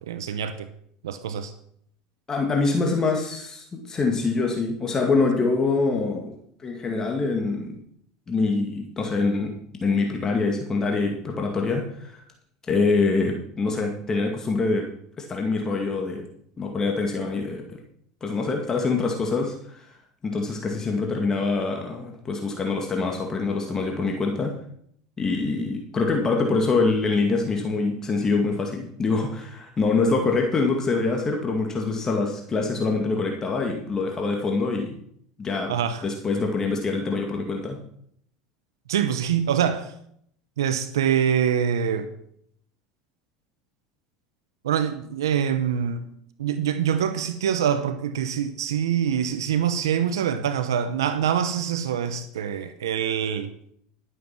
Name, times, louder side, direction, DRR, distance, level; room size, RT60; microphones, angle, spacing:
voice 1, 0.1-0.7 1.0-1.5 35.7-36.0 38.9-39.9 40.6-42.1 44.6-46.0 46.4-53.5, right 8 dB, 90° right, 11 dB, 0.8 m, -25 dB
voice 2, 2.3-7.8 8.3-9.5 9.8-12.2 12.7-14.9 15.2-16.3 16.6-17.8 18.2-19.9 20.2-24.5 25.2-35.0 35.4-35.7 36.0-37.8, left 3 dB, 25° left, 2 dB, 2.0 m, -25 dB
12.5 x 7.7 x 6.0 m, 0.68 s
hypercardioid pair, 95°, 2 cm